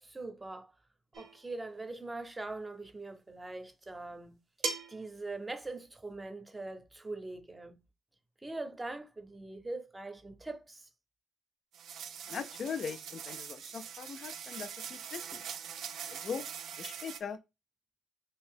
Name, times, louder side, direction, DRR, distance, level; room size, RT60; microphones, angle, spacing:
voice 1, 0.0-0.7 1.2-4.4 4.9-7.8 8.4-10.9, right 2 dB, 20° right, 0.6 m, -42 dB
sound 1, 1.1-1.5 3.0-3.1 4.6-5.1, right 4 dB, 55° right, 0.8 m, -37 dB
sound 2, 11.7-17.2, right 8 dB, 75° right, 0.4 m, -43 dB
voice 2, 12.3-15.4 16.0-16.5 16.8-17.4, left 6 dB, 55° left, 0.3 m, -40 dB
2.7 x 2.7 x 3.5 m
cardioid pair, 90°, 0 cm